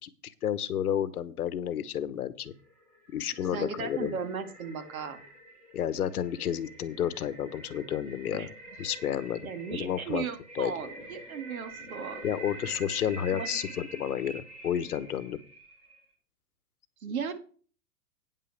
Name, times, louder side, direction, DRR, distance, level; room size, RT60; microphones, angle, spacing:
voice 1, 0.0-2.5 3.1-4.1 5.7-8.5 8.8-10.3 10.5-10.7 12.2-15.4, left 9 dB, 75° left, 15 dB, 1.2 m, -31 dB
sound 1, 2.7-16.0, right 2 dB, 20° right, 3.1 m, -46 dB
voice 2, 3.5-5.2 8.3-8.5 9.4-12.2 13.3-13.6 17.0-17.3, right 6 dB, 65° right, 8 dB, 2.1 m, -36 dB
9.5 x 5.6 x 7.0 m, 0.42 s
hypercardioid pair, 175°, 45 cm